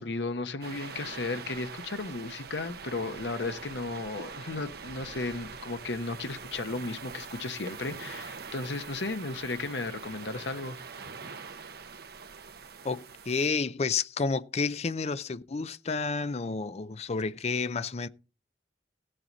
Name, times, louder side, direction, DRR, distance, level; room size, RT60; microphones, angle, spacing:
voice 1, 0.0-10.8, left 3 dB, 75° left, 1.0 m, -35 dB
sound 1, 0.6-13.5, right 5 dB, 60° right, 1.0 m, -44 dB
voice 2, 12.8-18.1, left 4 dB, 35° left, 0.5 m, -30 dB
16.0 x 7.7 x 4.0 m
head